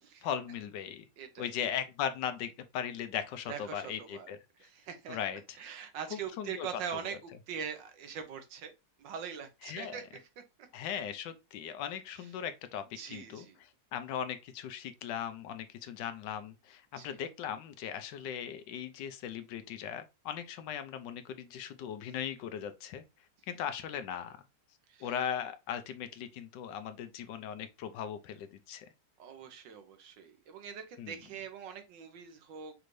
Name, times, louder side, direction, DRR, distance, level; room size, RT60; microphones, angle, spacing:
voice 1, 0.2-1.1 1.4-4.4 5.1-5.6 6.1-6.7 6.9-7.1 9.6-10.0 10.7-13.5 13.9-23.0 23.5-24.4 25.0-28.9 31.0-31.2, left 9 dB, 85° left, 1.3 m, -38 dB
voice 2, 1.2-1.5 3.5-5.2 5.6-8.7 9.0-10.7 13.0-13.6 17.0-17.1 24.9-25.1 29.2-32.7, right 7 dB, 85° right, 1.5 m, -43 dB
5.5 x 2.6 x 3.1 m
omnidirectional pair, 1.9 m